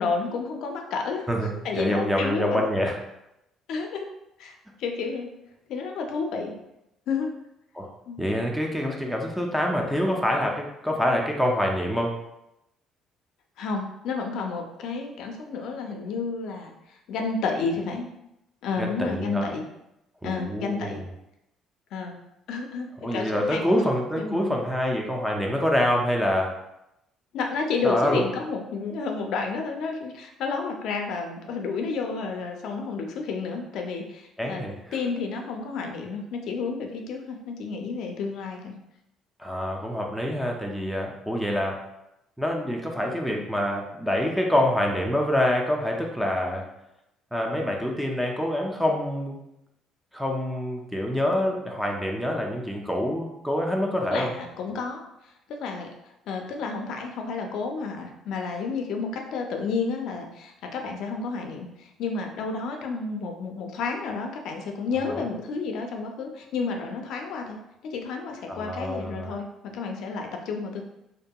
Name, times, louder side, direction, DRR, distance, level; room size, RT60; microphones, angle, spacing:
voice 1, 0.0-1.3 1.6-2.9 3.7-4.1 4.4-4.5 4.8-5.3 5.7-6.5 7.1-7.3 8.1-8.2 13.6-18.1 18.6-19.7 20.2-21.0 21.9-22.2 22.5-23.8 24.2-24.5 27.3-34.6 34.9-38.7 54.0-55.0 55.5-56.0 56.3-70.8, left 4 dB, 70° left, 3 dB, 0.4 m, -31 dB
voice 2, 1.3-3.0 7.7-7.9 8.2-12.1 18.8-19.5 20.2-21.0 23.0-26.5 27.8-28.3 34.4-34.8 39.4-41.8 42.4-46.7 47.3-49.4 50.1-54.4 65.1-65.2 68.5-69.4, equal, ahead, 0 dB, 0.4 m, -26 dB
2.7 x 2.6 x 2.2 m, 0.85 s
cardioid pair, 140°, 0 cm